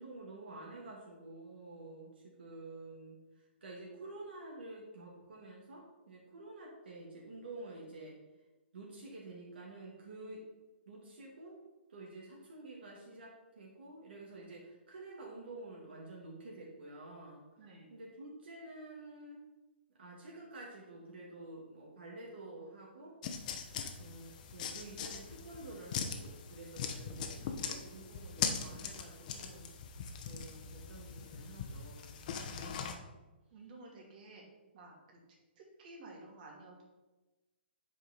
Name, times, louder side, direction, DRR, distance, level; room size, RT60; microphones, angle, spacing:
voice 1, 0.0-8.1 8.7-10.4 10.9-11.6 11.9-17.4 17.9-19.4 20.0-23.1 24.0-29.7 30.2-32.2 32.5-33.0 34.3-34.5, right 2 dB, 65° right, -3 dB, 2.0 m, -50 dB
voice 2, 17.6-17.9 33.5-34.4 34.7-35.2 35.6-36.8, right 2 dB, 45° right, -1 dB, 2.2 m, -53 dB
sound 1, 23.2-32.9, left 6 dB, 45° left, 0.9 m, -41 dB
8.1 x 5.4 x 4.2 m, 1.1 s
figure-of-eight pair, 130°, 6 cm